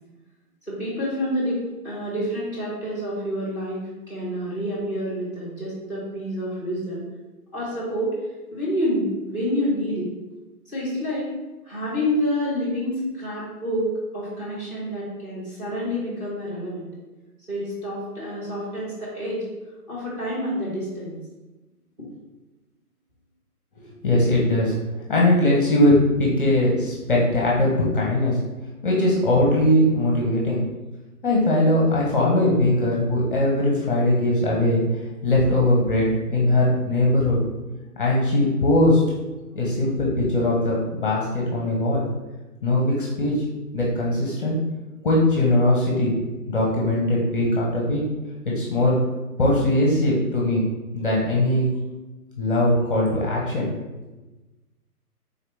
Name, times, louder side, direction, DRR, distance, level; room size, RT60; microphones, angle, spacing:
voice 1, 0.7-1.6 1.8-7.0 7.5-8.1 8.5-10.1 10.6-11.3 11.7-13.9 14.1-16.9 17.5-19.4 19.9-21.2, equal, 10° right, -6 dB, 0.9 m, -28 dB
voice 2, 23.8-24.7 25.1-28.4 28.8-30.6 31.2-34.8 35.2-37.4 38.0-39.0 39.5-42.1 42.6-43.4 43.7-44.6 45.0-46.1 46.5-48.0 48.6-49.0 49.4-50.6 50.9-51.6 52.4-53.7, left 1 dB, 35° left, -4 dB, 0.7 m, -20 dB
3.8 x 2.9 x 3.4 m, 1.1 s
figure-of-eight pair, 140°, 46 cm